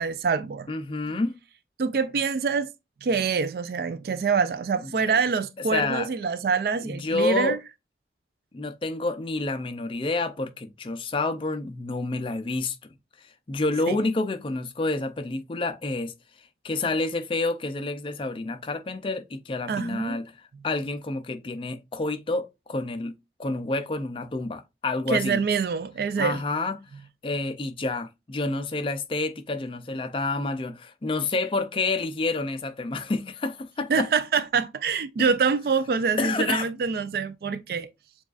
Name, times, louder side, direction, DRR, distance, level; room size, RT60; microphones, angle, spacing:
voice 1, 0.0-0.7 1.8-2.7 3.0-7.6 13.9-14.0 19.7-20.2 25.1-26.4 33.9-37.9, right 5 dB, 55° right, 0.3 m, -25 dB
voice 2, 0.7-1.3 5.1-5.2 5.7-6.1 6.8-7.6 8.5-12.8 13.2-16.1 16.6-20.3 20.6-23.1 23.4-25.4 26.2-26.8 27.2-34.1 36.2-36.7, left 3 dB, 30° left, 0.4 m, -28 dB
7.1 x 2.4 x 2.4 m
head